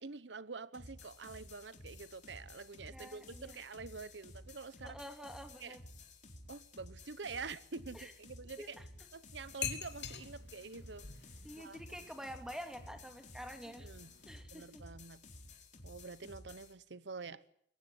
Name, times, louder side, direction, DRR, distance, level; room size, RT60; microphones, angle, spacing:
voice 1, 0.0-5.0 5.6-5.8 6.5-8.8 9.1-11.1 11.6-11.8 13.7-14.1 14.5-15.2 15.8-17.4, right 4 dB, 90° right, 1.0 m, -47 dB
sound 1, 0.7-16.7, left 2 dB, 45° left, 3.7 m, -54 dB
voice 2, 2.9-3.6 4.8-5.8 7.9-8.1 8.6-8.9 11.4-13.9 14.3-14.8, equal, 5° right, 2.8 m, -48 dB
sound 2, 9.4-14.4, left 7 dB, 70° left, 3.0 m, -46 dB
22.5 x 18.5 x 10.0 m
head